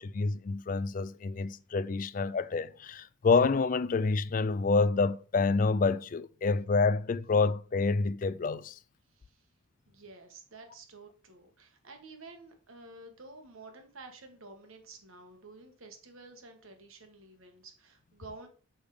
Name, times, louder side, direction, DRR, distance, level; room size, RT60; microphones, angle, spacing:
voice 1, 0.0-8.8, left 4 dB, 40° left, 0.3 m, -28 dB
voice 2, 9.1-9.5 9.9-18.5, right 3 dB, 80° right, 1.7 m, -51 dB
6.5 x 5.1 x 5.0 m
head